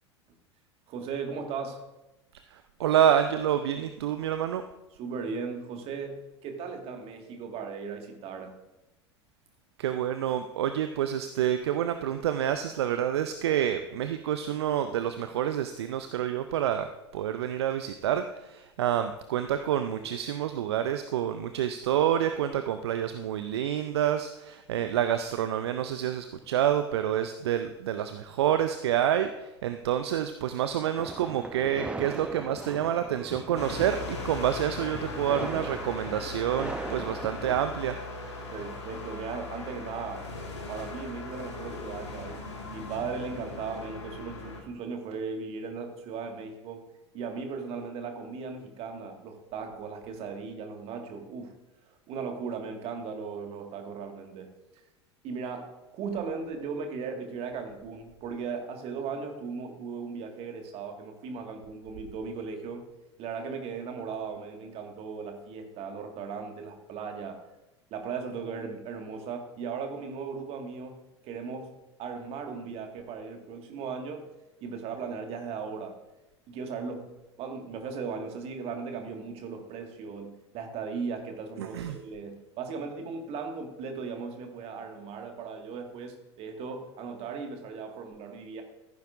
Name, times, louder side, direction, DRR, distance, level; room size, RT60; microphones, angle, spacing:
voice 1, 0.9-1.8 5.0-8.6 20.0-20.1 38.5-40.3 40.7-42.4 42.7-46.9 47.1-51.5 51.8-54.8 55.2-62.8 63.2-67.4 67.9-71.7 72.0-74.3 74.6-76.0 76.5-77.1 77.4-88.6, right 5 dB, 40° right, 4 dB, 1.8 m, -37 dB
voice 2, 2.5-4.6 9.8-16.9 17.1-37.9 81.6-82.0, right 10 dB, 65° right, 9 dB, 0.6 m, -28 dB
sound 1, 31.0-37.8, right 2 dB, 5° right, 0.4 m, -39 dB
sound 2, 33.5-44.6, left 3 dB, 75° left, 2.0 m, -39 dB
15.0 x 9.5 x 2.6 m, 0.98 s
figure-of-eight pair, 80°, 15 cm